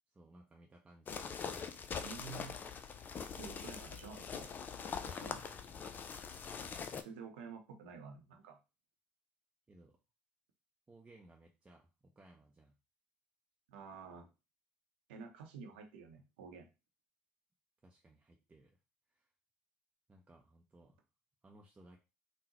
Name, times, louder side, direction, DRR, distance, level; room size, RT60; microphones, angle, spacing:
voice 1, 0.1-1.3 5.7-5.9 9.7-10.0 10.9-12.7 17.8-18.8 19.1-19.3 20.1-21.0 21.4-22.0, right 2 dB, 20° right, -1 dB, 0.7 m, -61 dB
sound 1, 1.1-7.0, left 6 dB, 40° left, 0.4 m, -43 dB
voice 2, 2.0-2.5 3.4-4.5 5.0-5.4 7.0-8.6 13.7-14.3 15.1-16.7, right 5 dB, 80° right, 4 dB, 0.7 m, -50 dB
3.7 x 2.1 x 2.9 m, 0.28 s
hypercardioid pair, 65°, 5 cm